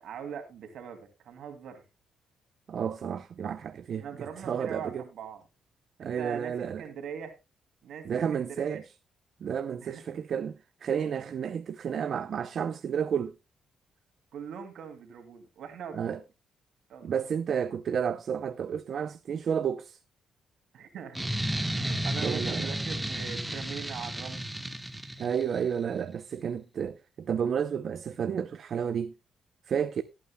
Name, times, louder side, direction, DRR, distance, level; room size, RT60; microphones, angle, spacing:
voice 1, 0.0-1.8 4.0-5.4 6.0-7.4 7.8-8.8 9.8-10.0 11.2-11.3 14.3-16.2 16.9-17.2 20.7-21.2 21.7-24.5, right 7 dB, 75° right, 2.6 m, -41 dB
voice 2, 2.7-4.1 4.4-5.0 6.0-6.8 8.0-8.8 9.4-13.4 15.9-16.2 17.0-20.0 22.2-22.7 25.2-29.1 29.7-30.0, right 7 dB, 60° right, 0.6 m, -31 dB
sound 1, 21.1-25.6, right 1 dB, 10° right, 1.2 m, -32 dB
19.0 x 8.6 x 2.2 m
cardioid pair, 85°, 0 cm